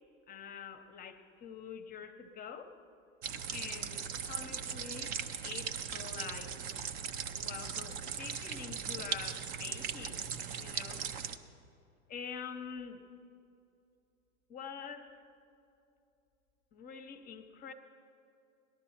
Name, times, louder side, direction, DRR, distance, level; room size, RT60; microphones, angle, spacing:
voice 1, 0.3-2.8 3.5-6.6 7.4-10.3 10.6-11.1 12.1-13.0 14.5-15.1 16.7-17.7, left 7 dB, 20° left, 9 dB, 0.8 m, -46 dB
sound 1, 3.2-11.4, right 7 dB, 25° right, 0.3 m, -39 dB
18.5 x 11.5 x 4.2 m, 2.7 s
hypercardioid pair, 115°, 40 cm